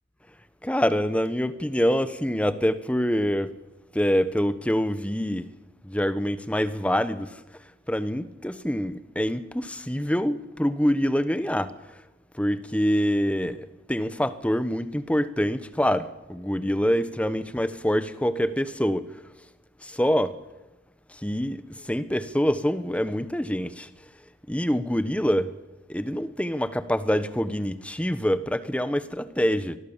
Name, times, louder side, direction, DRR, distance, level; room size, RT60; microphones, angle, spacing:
voice 1, 0.6-3.5 3.9-5.5 5.8-7.4 7.9-11.7 12.4-19.1 19.8-20.4 21.1-23.9 24.5-25.5 25.9-29.8, equal, 5° left, 0.9 m, -25 dB
24.5 x 19.5 x 7.2 m
head